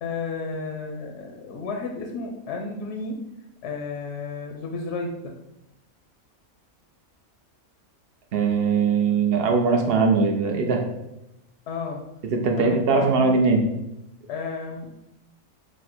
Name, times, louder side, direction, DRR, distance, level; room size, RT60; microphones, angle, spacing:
voice 1, 0.0-3.2 3.6-5.3 11.7-12.0 12.6-13.4 14.3-14.9, left 4 dB, 65° left, 2 dB, 0.7 m, -32 dB
voice 2, 8.3-10.8 12.3-13.6, right 4 dB, 65° right, 3 dB, 0.6 m, -20 dB
4.6 x 2.1 x 4.2 m, 0.88 s
omnidirectional pair, 1.5 m